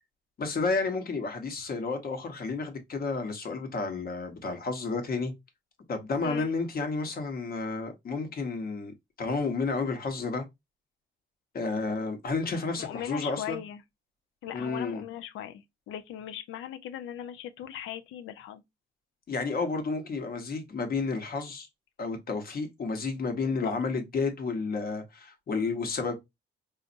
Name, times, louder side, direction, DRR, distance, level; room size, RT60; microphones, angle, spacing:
voice 1, 0.4-5.3 5.9-10.4 11.5-13.6 14.5-15.0 19.3-21.7 22.0-26.1, left 4 dB, 50° left, 1.0 m, -31 dB
voice 2, 12.8-13.8 14.4-18.6 23.6-23.7, left 10 dB, 85° left, 0.5 m, -39 dB
4.0 x 2.5 x 2.5 m
cardioid pair, 90°, 20 cm